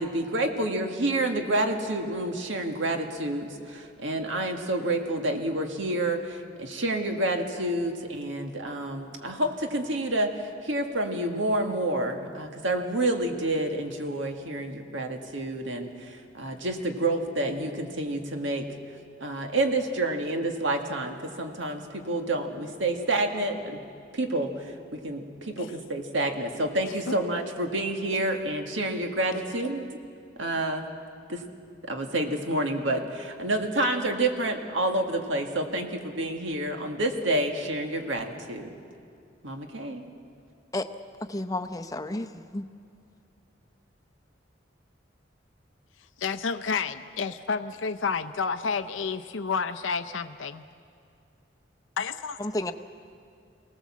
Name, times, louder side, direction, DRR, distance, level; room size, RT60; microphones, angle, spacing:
voice 1, 0.0-18.7 19.2-23.8 24.1-29.9 30.4-30.8 31.3-31.4 31.8-38.7 39.4-40.1, right 1 dB, 80° right, 4 dB, 1.8 m, -29 dB
voice 2, 41.2-42.6 52.4-52.7, left 1 dB, 20° left, 8 dB, 0.7 m, -31 dB
voice 3, 46.2-50.6 52.0-52.4, left 5 dB, 85° left, 9 dB, 0.6 m, -30 dB
24.0 x 18.0 x 7.4 m, 2.4 s
head